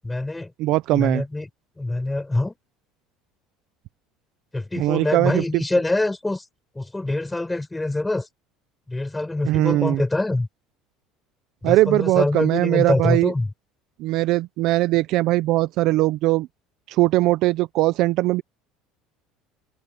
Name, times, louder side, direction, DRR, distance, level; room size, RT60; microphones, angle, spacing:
voice 1, 0.0-0.5 0.9-1.5 1.8-2.6 4.5-6.5 6.7-8.3 8.9-10.5 11.6-13.5, left 2 dB, 5° left, 6.5 m, -25 dB
voice 2, 0.6-1.2 4.8-5.4 9.5-10.0 11.6-13.3 14.0-16.5 16.9-18.4, right 17 dB, 45° right, 0.5 m, -20 dB
cardioid pair, 180°, 0 cm